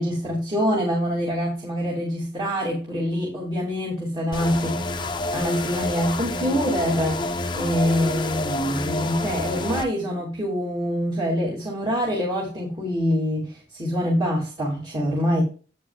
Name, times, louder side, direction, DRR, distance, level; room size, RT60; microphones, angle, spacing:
voice 1, 0.0-4.8 5.3-15.4, equal, 25° right, 3.0 m, -25 dB
sound 1, 4.3-9.8, left 2 dB, 25° left, 0.9 m, -28 dB
9.7 x 9.2 x 2.4 m
head